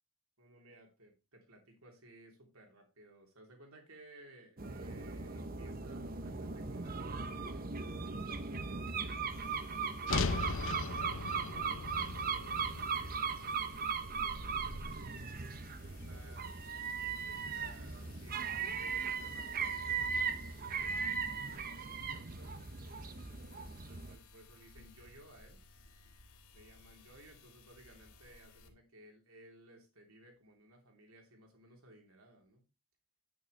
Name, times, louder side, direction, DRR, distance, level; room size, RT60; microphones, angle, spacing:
voice 1, 0.4-11.3 11.7-15.3 15.9-23.2 23.8-25.6 26.5-32.6, right 1 dB, 70° right, 2 dB, 3.3 m, -60 dB
sound 1, 4.6-24.2, right 5 dB, 40° right, 0.8 m, -38 dB
sound 2, 9.3-28.7, left 2 dB, 75° left, 1.9 m, -57 dB
sound 3, 10.1-14.3, left 4 dB, 60° left, 0.8 m, -38 dB
9.2 x 8.9 x 3.3 m, 0.28 s
head